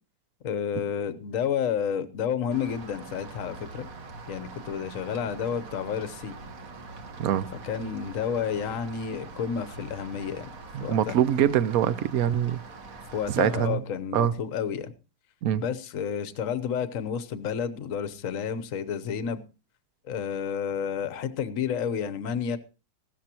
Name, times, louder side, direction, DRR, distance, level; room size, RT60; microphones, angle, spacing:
voice 1, 0.4-3.9 4.3-6.3 7.6-10.5 10.8-11.1 13.1-14.9 15.6-19.4 20.1-22.6, left 7 dB, 50° left, 1.1 m, -30 dB
Rain, 2.5-13.6, right 3 dB, 45° right, 1.6 m, -44 dB
voice 2, 10.7-12.6 13.3-13.8 14.1-14.3 15.4-15.7, right 10 dB, 60° right, 1.0 m, -24 dB
16.0 x 13.0 x 2.9 m
omnidirectional pair, 2.2 m